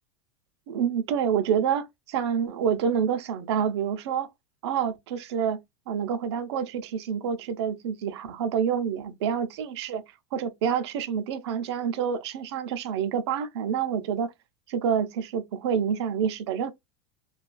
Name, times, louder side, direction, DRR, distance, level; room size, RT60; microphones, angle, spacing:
voice 1, 0.7-4.3 4.6-5.6 5.9-10.0 10.3-14.3 14.7-16.7, right 7 dB, 75° right, 0.6 m, -27 dB
2.4 x 2.3 x 2.2 m
supercardioid pair, 170°, 14 cm